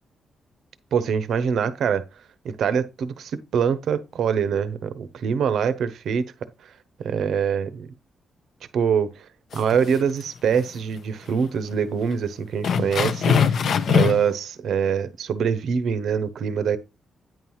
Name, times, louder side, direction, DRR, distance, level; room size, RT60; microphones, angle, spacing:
voice 1, 0.9-2.0 2.4-6.3 7.0-7.9 8.7-9.1 9.5-13.6 13.9-16.8, right 7 dB, 70° right, 0.6 m, -24 dB
sound 1, 9.5-10.2 10.5-10.7 11.3-11.4 11.7-11.8 12.6-14.3, left 7 dB, 55° left, 0.5 m, -22 dB
9.2 x 5.5 x 3.0 m
wide cardioid pair, 155°, 0 cm